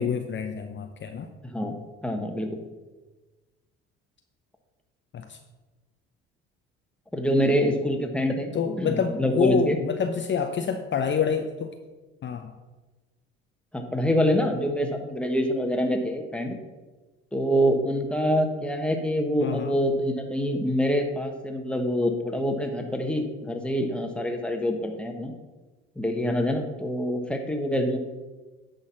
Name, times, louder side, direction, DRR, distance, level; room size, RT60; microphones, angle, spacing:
voice 1, 0.0-1.3 5.1-5.4 8.5-11.7 12.2-12.5 19.4-19.7, left 7 dB, 35° left, 5 dB, 0.7 m, -27 dB
voice 2, 1.4-1.8 2.0-2.6 7.1-8.5 8.8-9.8 13.7-16.6 17.3-25.3 26.0-28.0, equal, 5° left, 4 dB, 1.3 m, -25 dB
9.7 x 4.0 x 5.8 m, 1.2 s
hypercardioid pair, 65°, 31 cm